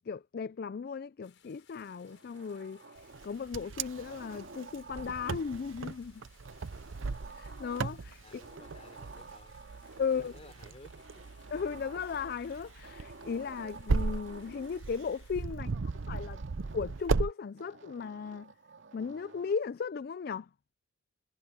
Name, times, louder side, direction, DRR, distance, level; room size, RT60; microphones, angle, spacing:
voice 1, 0.0-2.8 3.2-6.2 7.3-8.2 10.0-10.3 11.5-15.7 16.1-16.4 16.7-18.5 18.9-20.5, left 6 dB, 50° left, 0.4 m, -36 dB
sound 1, 1.2-15.5, left 8 dB, 70° left, 7.5 m, -65 dB
sound 2, 1.8-3.4 3.7-5.8 6.5-8.1 8.4-10.4 10.9-12.5 12.8-14.8 15.6-17.2 17.6-19.6, right 3 dB, 70° right, 2.3 m, -52 dB
Wind, 3.1-17.3, right 4 dB, 90° right, 0.7 m, -36 dB
voice 2, 8.2-9.6 10.0-11.3 15.7-16.2, left 2 dB, 35° left, 4.1 m, -57 dB
head